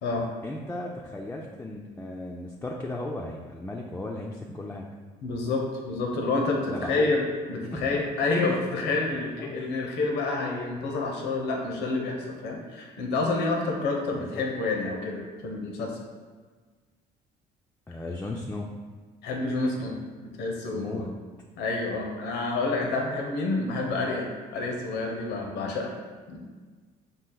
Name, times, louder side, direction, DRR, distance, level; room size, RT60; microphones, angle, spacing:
voice 1, 0.4-4.9 6.7-7.2 7.6-8.0 9.4-9.6 14.1-14.4 17.9-18.7 20.7-21.1, left 2 dB, 10° left, -1 dB, 0.3 m, -36 dB
voice 2, 5.2-16.0 19.2-19.9 20.2-21.1 21.6-25.9 26.3-26.4, left 3 dB, 85° left, 1 dB, 0.8 m, -28 dB
5.2 x 2.4 x 3.8 m, 1.4 s
cardioid pair, 110°, 17 cm